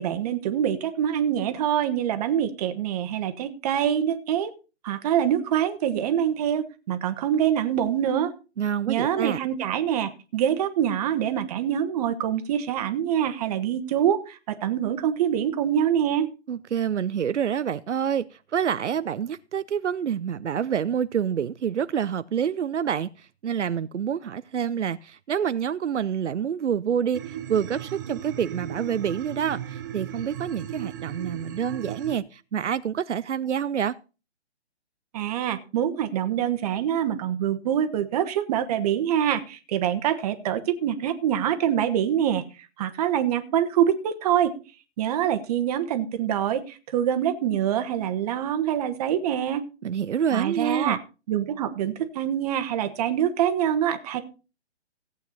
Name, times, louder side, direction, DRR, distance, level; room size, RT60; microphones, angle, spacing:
voice 1, 0.0-4.5 4.8-8.3 8.9-16.3 35.1-42.4 42.8-44.5 45.0-49.6 50.3-51.0 51.3-54.2, right 10 dB, 35° right, 1.2 m, -25 dB
voice 2, 8.6-9.4 16.5-18.3 18.5-34.0 49.8-51.0, right 8 dB, 85° right, 0.6 m, -27 dB
sound 1, 27.1-32.2, right 11 dB, 20° right, 0.5 m, -36 dB
16.0 x 8.3 x 4.0 m
hypercardioid pair, 140°, 35 cm